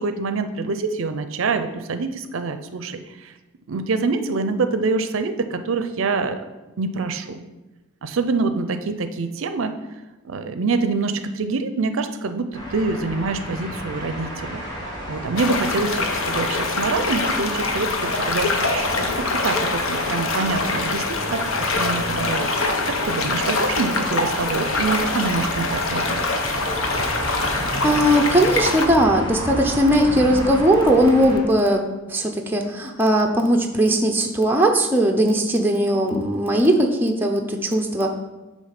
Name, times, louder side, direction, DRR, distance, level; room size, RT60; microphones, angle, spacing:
voice 1, 0.0-3.3 3.7-6.4 6.8-7.4 8.0-9.7 10.2-21.5 21.8-26.2, right 4 dB, 70° right, 9 dB, 0.5 m, -26 dB
sound 1, 12.5-31.4, equal, 20° left, 1.2 m, -33 dB
sound 2, 15.4-28.9, left 3 dB, 75° left, 0.8 m, -24 dB
voice 2, 27.4-31.8 32.1-38.1, right 1 dB, 10° right, 1 dB, 0.5 m, -19 dB
8.5 x 3.1 x 5.7 m, 1.1 s
head